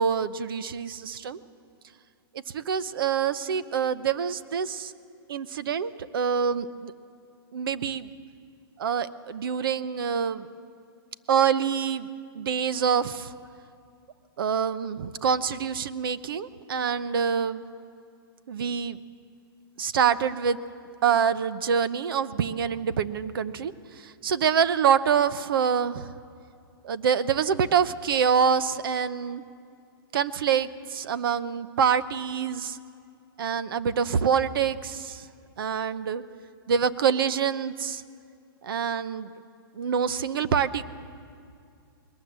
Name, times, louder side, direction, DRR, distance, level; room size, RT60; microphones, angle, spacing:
voice 1, 0.0-1.4 2.5-4.9 5.3-6.9 7.5-8.1 8.8-10.5 11.3-12.1 12.3-13.3 14.4-17.6 18.5-19.0 19.8-20.6 21.0-26.1 26.8-29.4 30.1-32.8 33.4-35.3 35.6-36.2 36.7-38.0 38.6-39.3 39.7-40.8, right 7 dB, 60° right, 14 dB, 0.8 m, -26 dB
20.5 x 19.0 x 7.5 m, 2.4 s
hypercardioid pair, 170°, 13 cm